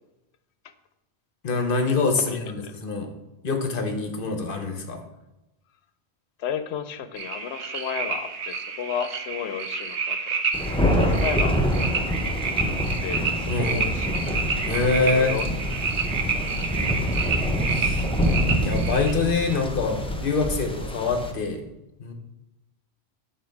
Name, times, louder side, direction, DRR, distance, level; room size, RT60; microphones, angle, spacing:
voice 1, 1.4-3.1 3.4-5.0 13.5-13.9 14.7-15.3 17.7-18.1 18.6-21.6 22.0-22.1, left 3 dB, 55° left, 5 dB, 1.0 m, -25 dB
voice 2, 2.2-2.7 6.4-10.7 11.0-11.6 13.0-14.5 14.9-15.5 16.6-17.1, left 8 dB, 80° left, 10 dB, 0.8 m, -33 dB
sound 1, 7.2-19.1, right 5 dB, 90° right, 1.1 m, -29 dB
Thunder, 10.5-21.3, equal, 10° left, 0.3 m, -26 dB
6.7 x 3.8 x 5.2 m, 0.96 s
omnidirectional pair, 1.1 m